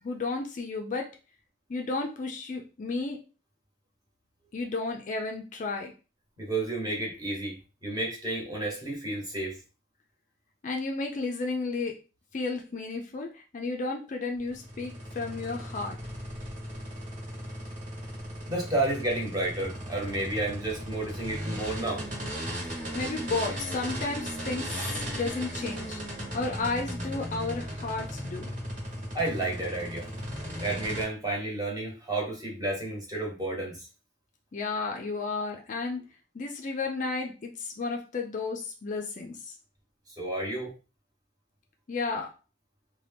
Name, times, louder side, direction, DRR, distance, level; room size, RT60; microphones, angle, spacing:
voice 1, 0.0-1.2 1.7-3.2 4.5-5.9 10.6-12.0 12.3-16.0 22.9-26.0 26.3-28.5 34.5-36.0 36.3-39.5 41.9-42.3, left 3 dB, 40° left, 2 dB, 0.4 m, -33 dB
voice 2, 6.4-9.6 18.5-22.1 29.1-30.1 30.6-33.9 40.1-40.7, right 2 dB, 20° right, -3 dB, 1.0 m, -31 dB
sound 1, 14.4-31.0, equal, 45° right, 1.2 m, -37 dB
2.7 x 2.2 x 3.4 m, 0.32 s
head